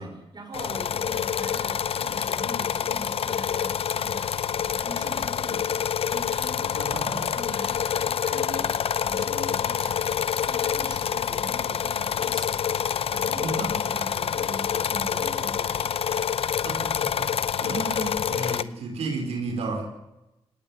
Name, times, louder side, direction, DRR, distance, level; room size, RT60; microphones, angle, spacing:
voice 1, 0.0-16.1, right 2 dB, 40° right, 4 dB, 5.4 m, -42 dB
sound 1, 0.5-18.6, left 8 dB, 65° left, 0.7 m, -27 dB
voice 2, 6.7-7.3 13.4-13.7 14.2-14.3 16.6-19.8, right 3 dB, 85° right, 2 dB, 5.1 m, -33 dB
20.0 x 18.5 x 8.1 m, 0.94 s
cardioid pair, 75°, 10 cm